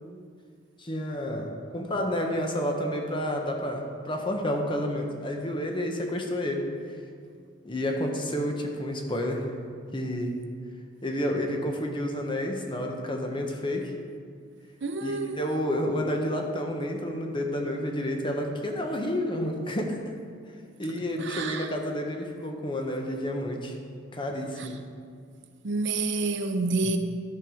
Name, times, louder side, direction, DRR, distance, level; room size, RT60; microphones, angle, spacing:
voice 1, 0.8-6.7 7.6-9.5 9.9-10.3 11.0-13.9 15.0-20.0 20.8-23.7 24.1-24.8 26.8-27.0, equal, 25° left, 1.0 m, -30 dB
voice 2, 14.8-15.4 21.3-21.6 25.6-27.0, right 3 dB, 60° right, 0.6 m, -28 dB
11.0 x 5.3 x 6.4 m
head